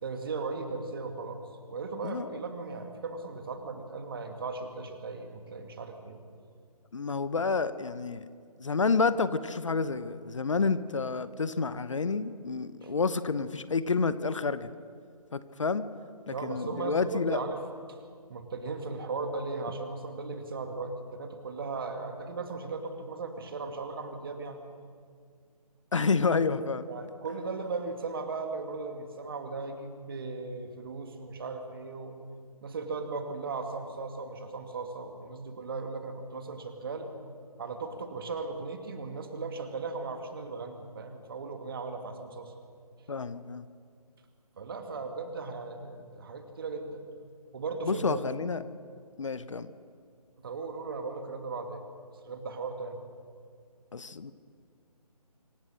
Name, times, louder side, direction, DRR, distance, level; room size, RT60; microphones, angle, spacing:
voice 1, 0.0-1.4 1.7-6.2 12.8-12.9 16.3-17.6 17.9-18.0 18.3-24.6 26.9-32.2 32.6-37.1 37.6-42.5 44.6-47.0 47.5-48.2 50.4-51.8 52.2-53.0, right 4 dB, 35° right, 6 dB, 2.1 m, -37 dB
voice 2, 6.9-8.2 8.6-14.7 15.3-15.8 16.3-17.4 25.9-26.8 43.1-43.7 47.8-48.6 49.2-49.7 53.9-54.3, left 4 dB, 50° left, 14 dB, 0.8 m, -29 dB
25.5 x 15.5 x 6.4 m, 2.1 s
figure-of-eight pair, 150°, 20 cm